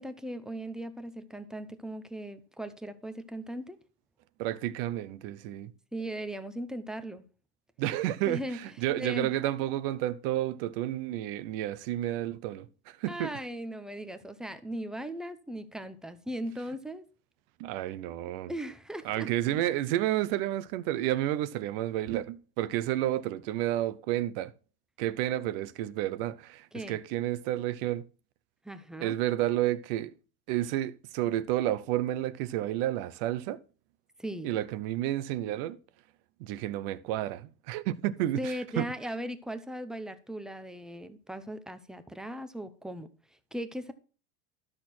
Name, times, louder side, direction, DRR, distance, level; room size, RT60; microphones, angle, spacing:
voice 1, 0.0-3.8 5.9-7.2 8.3-8.6 9.0-9.3 13.1-17.0 18.5-19.3 26.7-27.0 28.6-29.2 34.2-34.5 38.4-43.1 43.5-43.9, equal, ahead, 0.7 m, -38 dB
voice 2, 4.4-5.7 7.8-8.4 8.8-12.7 13.0-13.3 17.6-18.5 19.0-24.5 25.0-28.0 29.0-30.1 30.5-33.6 34.4-35.8 36.4-38.9, right 13 dB, 60° right, 0.8 m, -31 dB
12.5 x 6.4 x 4.3 m
supercardioid pair, 150°, 32 cm